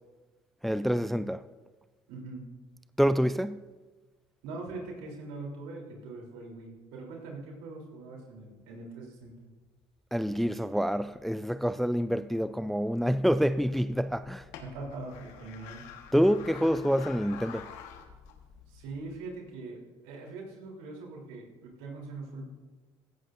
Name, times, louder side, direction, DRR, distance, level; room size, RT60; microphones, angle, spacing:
voice 1, 0.6-1.4 3.0-3.6 10.1-14.5 16.1-17.7, equal, ahead, 0.3 m, -27 dB
voice 2, 2.1-2.4 4.4-9.4 14.6-15.8 18.7-22.5, right 3 dB, 85° right, 3.3 m, -42 dB
sound 1, 13.0-19.3, left 8 dB, 80° left, 1.3 m, -49 dB
16.0 x 14.0 x 2.6 m
supercardioid pair, 75°, 12 cm